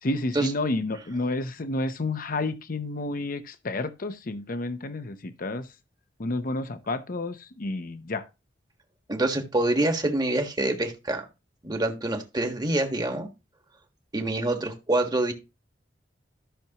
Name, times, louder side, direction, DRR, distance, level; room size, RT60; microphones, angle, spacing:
voice 1, 0.0-5.7 6.2-8.3, left 2 dB, 50° left, 0.8 m, -30 dB
voice 2, 9.1-11.2 11.6-13.3 14.1-15.3, right 2 dB, 25° right, 1.5 m, -26 dB
13.5 x 6.0 x 2.9 m
head